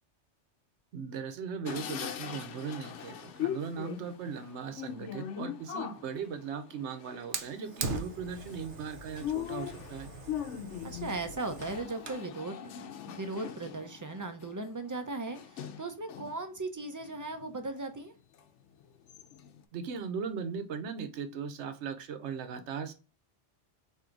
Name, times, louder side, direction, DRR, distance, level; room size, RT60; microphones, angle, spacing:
voice 1, 0.9-10.1 19.7-22.9, right 6 dB, 75° right, 1.0 m, -38 dB
sound 1, 1.7-16.4 16.9-17.8 18.4-18.5 18.8-19.6, left 10 dB, 85° left, 0.9 m, -41 dB
Fire, 7.3-12.3, right 4 dB, 55° right, 0.7 m, -41 dB
voice 2, 10.8-18.1, right 2 dB, 30° right, 0.4 m, -38 dB
3.8 x 2.7 x 4.4 m
omnidirectional pair, 1.2 m